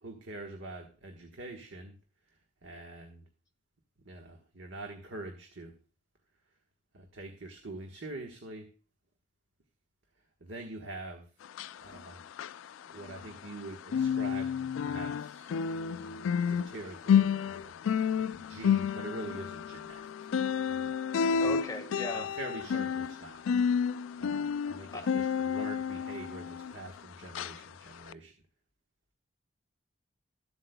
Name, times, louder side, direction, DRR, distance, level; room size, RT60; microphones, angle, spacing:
voice 1, 0.0-1.9 2.3-2.4 2.6-3.2 4.0-5.7 6.9-8.7 10.4-11.3 11.8-12.2 12.9-17.7 18.3-21.0 21.3-21.8 22.1-23.4 24.2-28.3, right 2 dB, 70° right, 3 dB, 1.3 m, -45 dB
sound 1, 11.4-13.6 13.9-27.0 27.3-27.6 28.1-28.2, left 7 dB, 85° left, 0.3 m, -30 dB
voice 2, 21.4-22.3 24.9-25.1, left 2 dB, 20° left, 3 dB, 1.6 m, -38 dB
14.0 x 7.8 x 2.2 m, 0.37 s
head